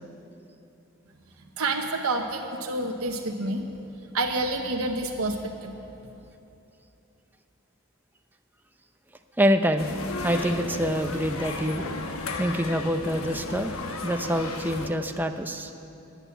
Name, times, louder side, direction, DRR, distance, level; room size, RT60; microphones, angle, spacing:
voice 1, 1.6-3.7 4.1-5.7, right 2 dB, 85° right, 2 dB, 0.9 m, -28 dB
voice 2, 9.4-9.9 10.2-11.9 12.4-15.7, equal, 10° right, 7 dB, 0.6 m, -26 dB
sound 1, 9.8-14.9, left 3 dB, 80° left, 1.1 m, -34 dB
15.5 x 9.0 x 7.2 m, 3.0 s
head